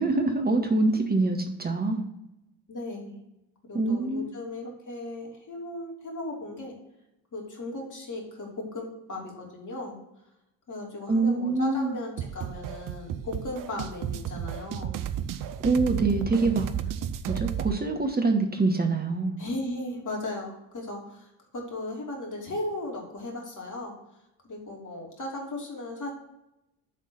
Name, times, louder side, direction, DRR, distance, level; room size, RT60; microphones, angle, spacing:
voice 1, 0.0-2.0 3.7-4.3 11.1-12.0 15.6-16.7 17.3-19.4, right 3 dB, 20° right, 4 dB, 1.1 m, -25 dB
voice 2, 2.7-3.2 3.6-6.7 7.3-10.0 10.7-15.0 19.4-23.9 24.4-26.1, left 1 dB, 40° left, -1 dB, 2.8 m, -36 dB
sound 1, 12.2-17.8, right 10 dB, 45° right, 0.6 m, -33 dB
8.5 x 3.7 x 6.4 m, 0.88 s
hypercardioid pair, 50°, 49 cm